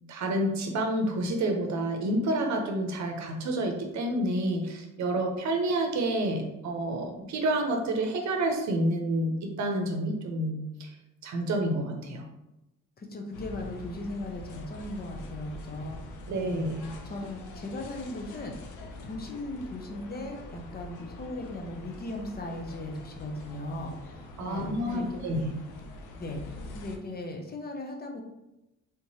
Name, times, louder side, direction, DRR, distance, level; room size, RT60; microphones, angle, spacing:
voice 1, 0.1-10.9 11.2-12.3 16.3-16.9 24.4-25.5, right 1 dB, 65° right, 3 dB, 0.7 m, -29 dB
voice 2, 13.0-16.0 16.4-16.6 17.0-18.5 19.0-25.5 26.2-28.2, left 1 dB, 30° left, 2 dB, 0.7 m, -38 dB
sound 1, 13.3-27.0, left 2 dB, 85° left, 0.6 m, -44 dB
3.6 x 2.9 x 2.7 m, 0.94 s
cardioid pair, 90°, 30 cm